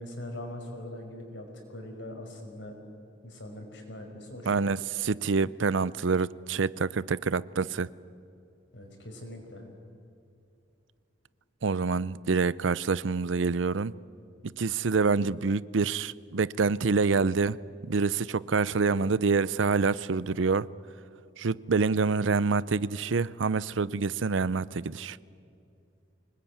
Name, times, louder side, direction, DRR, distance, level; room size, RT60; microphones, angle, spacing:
voice 1, 0.0-2.7 3.2-4.7 8.7-9.6, left 1 dB, 70° left, 5.4 m, -42 dB
voice 2, 4.5-7.9 11.6-13.9 14.6-17.6 17.8-20.7 21.4-25.2, right 4 dB, 85° right, 0.6 m, -26 dB
25.0 x 20.0 x 9.5 m
head